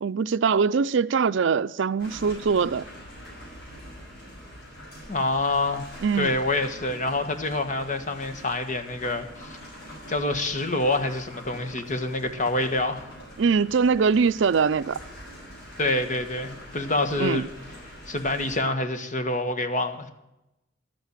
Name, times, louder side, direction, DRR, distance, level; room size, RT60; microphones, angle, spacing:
voice 1, 0.0-2.9 6.0-6.3 13.4-15.0 17.2-17.4, right 5 dB, 70° right, 0.5 m, -22 dB
sound 1, 2.0-18.6, equal, 60° left, 6.4 m, -44 dB
voice 2, 5.1-5.8 6.1-9.6 10.1-13.0 15.8-17.5 18.1-20.1, left 2 dB, 40° left, 1.5 m, -26 dB
12.5 x 8.5 x 9.0 m
head